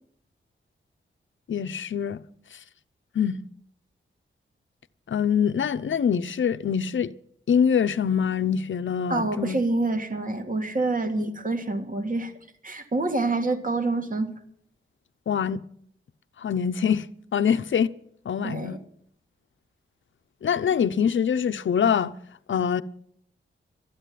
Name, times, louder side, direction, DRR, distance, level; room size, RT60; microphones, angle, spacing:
voice 1, 1.5-2.2 2.5-2.6 3.1-3.4 5.1-7.1 7.5-9.6 11.2-11.3 15.3-15.6 16.4-17.1 17.3-17.9 18.2-18.8 20.4-22.1 22.5-22.8, left 7 dB, 70° left, 0.7 m, -24 dB
voice 2, 9.1-12.3 12.6-14.4 18.4-18.8, right 2 dB, 40° right, 2.0 m, -27 dB
13.0 x 9.9 x 9.3 m
wide cardioid pair, 120°, 21 cm